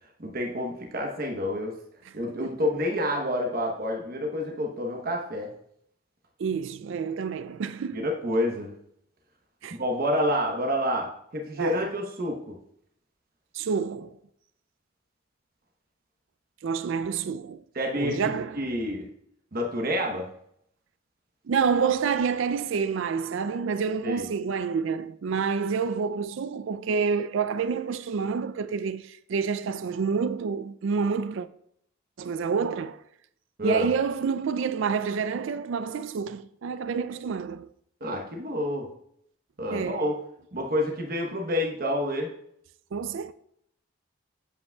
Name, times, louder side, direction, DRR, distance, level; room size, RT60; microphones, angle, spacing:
voice 1, 0.2-1.7 2.1-5.5 7.9-8.7 9.8-12.6 17.7-19.1 19.5-20.3 24.0-24.3 33.6-33.9 38.0-38.9 39.6-40.2 40.5-42.3, left 1 dB, 45° right, 1.0 m, -28 dB
voice 2, 6.4-8.1 9.6-9.8 11.6-11.9 13.5-14.2 16.6-17.6 17.9-18.7 21.5-31.5 32.2-33.0 33.6-37.7 39.7-40.0 42.9-43.3, right 6 dB, 65° right, 0.4 m, -28 dB
8.3 x 8.0 x 2.3 m
head